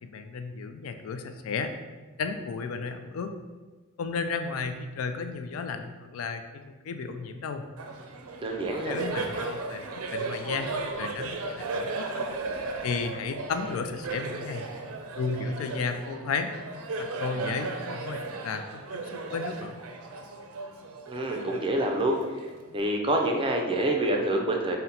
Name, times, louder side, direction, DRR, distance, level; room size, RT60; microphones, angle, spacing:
voice 1, 0.0-1.7 2.2-3.3 4.0-7.6 8.8-12.3 12.8-14.7 15.1-16.5 17.0-19.8, left 5 dB, 70° left, 8 dB, 0.3 m, -33 dB
Laughter, 7.8-22.8, right 3 dB, 90° right, 0.4 m, -36 dB
voice 2, 8.4-9.0 21.1-22.2 22.7-24.8, right 1 dB, 25° right, 2 dB, 0.4 m, -26 dB
4.1 x 2.1 x 3.8 m, 1.3 s
head